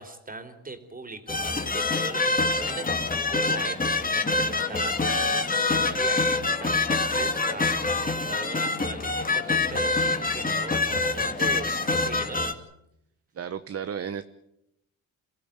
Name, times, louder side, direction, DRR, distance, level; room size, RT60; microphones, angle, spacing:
voice 1, 0.0-12.6, right 3 dB, 25° right, 8 dB, 3.9 m, -40 dB
sound 1, 1.3-12.5, left 3 dB, 25° left, 2.7 m, -26 dB
voice 2, 13.3-14.2, right 7 dB, 45° right, 11 dB, 1.2 m, -33 dB
28.0 x 16.5 x 9.0 m, 0.82 s
cardioid pair, 90°, 33 cm